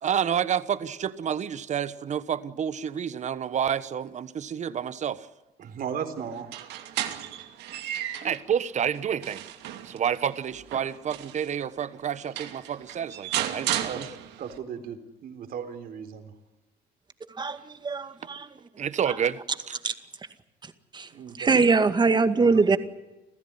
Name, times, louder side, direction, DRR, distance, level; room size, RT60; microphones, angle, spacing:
voice 1, 0.0-5.3 8.2-9.5 9.8-14.1 18.8-19.4 19.7-19.8, right 8 dB, 45° right, 1.3 m, -29 dB
voice 2, 5.6-6.5 13.7-14.0 14.4-15.0 15.2-16.3 21.1-21.9 22.2-22.6, right 7 dB, 60° right, 4.2 m, -36 dB
sound 1, 6.4-8.4 8.9-11.5 12.0-12.1 12.4-14.6, right 12 dB, 85° right, 2.6 m, -34 dB
voice 3, 17.4-18.5 19.8-19.9 20.6-21.1 21.4-22.8, right 4 dB, 25° right, 2.1 m, -23 dB
28.0 x 15.5 x 10.0 m
cardioid pair, 110°, 17 cm